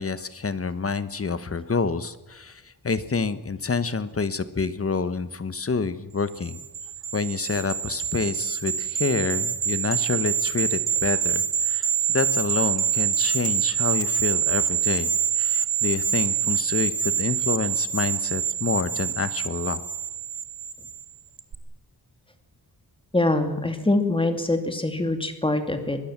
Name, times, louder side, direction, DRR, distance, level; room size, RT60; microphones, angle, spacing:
voice 1, 0.0-6.6 7.1-19.8, left 4 dB, 35° left, 13 dB, 1.3 m, -28 dB
sound 1, 6.4-21.0 21.4-21.5, right 8 dB, 60° right, 1.8 m, -26 dB
voice 2, 23.1-26.0, left 2 dB, 15° left, 7 dB, 2.6 m, -24 dB
23.5 x 20.5 x 7.4 m, 1.1 s
wide cardioid pair, 155°, 40 cm